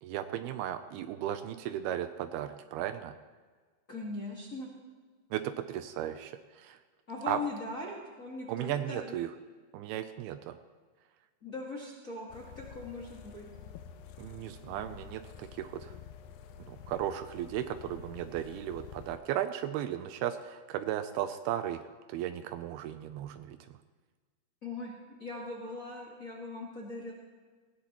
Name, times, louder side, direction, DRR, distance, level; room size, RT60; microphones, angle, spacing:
voice 1, 0.0-3.1 5.3-6.8 7.3-7.4 8.5-9.3 9.7-10.6 14.2-15.9 16.7-21.8 22.1-23.6, right 11 dB, 80° right, 9 dB, 2.5 m, -35 dB
voice 2, 3.9-4.7 7.1-9.1 11.4-13.5 24.6-27.1, left 2 dB, 50° left, -3 dB, 0.9 m, -40 dB
sound 1, 12.3-19.2, left 8 dB, 75° left, 2.1 m, -49 dB
19.0 x 16.5 x 3.0 m, 1.5 s
omnidirectional pair, 4.6 m